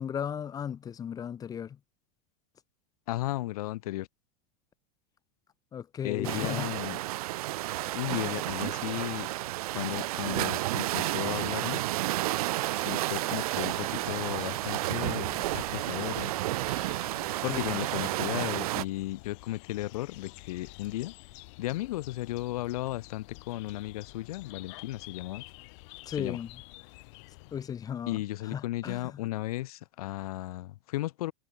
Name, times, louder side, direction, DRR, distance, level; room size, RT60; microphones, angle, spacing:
voice 1, 0.0-1.8 5.7-6.7 17.5-17.8 26.0-26.5 27.5-29.2, left 8 dB, 20° left, 3.5 m, -36 dB
voice 2, 3.1-4.1 6.0-7.0 7.9-9.3 9.7-11.8 12.7-16.3 17.4-21.1 21.6-25.4 26.2-26.4 28.1-31.3, left 16 dB, 85° left, 1.5 m, -35 dB
sound 1, 6.2-18.9, right 17 dB, 90° right, 0.9 m, -31 dB
sound 2, 13.0-27.9, left 28 dB, 55° left, 6.3 m, -50 dB
supercardioid pair, 170°, 19 cm